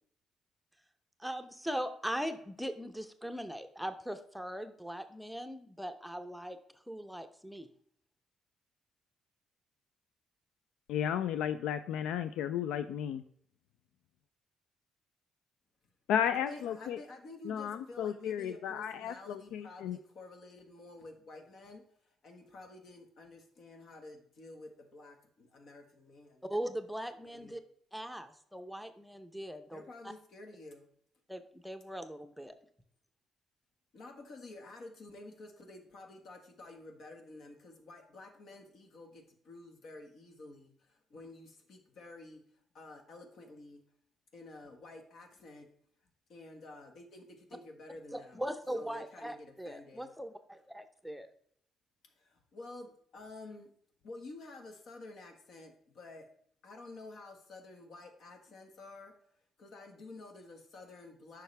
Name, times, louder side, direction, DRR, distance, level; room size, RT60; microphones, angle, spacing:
voice 1, 1.2-6.6 6.9-7.7 26.4-27.6 27.9-30.1 31.3-32.5 48.1-51.3, equal, ahead, 8 dB, 0.7 m, -40 dB
voice 2, 10.9-13.2 16.1-17.0 17.4-20.0, left 9 dB, 90° left, 11 dB, 0.3 m, -33 dB
voice 3, 16.5-21.8 22.2-26.4 27.2-27.6 29.7-30.9 33.9-42.4 42.7-43.8 44.3-45.7 46.3-48.4 48.7-50.1 52.2-53.7 54.0-56.2 56.6-59.1 59.6-61.4, left 2 dB, 65° left, 4 dB, 1.5 m, -50 dB
9.1 x 5.7 x 3.3 m, 0.64 s
cardioid pair, 90°, 0 cm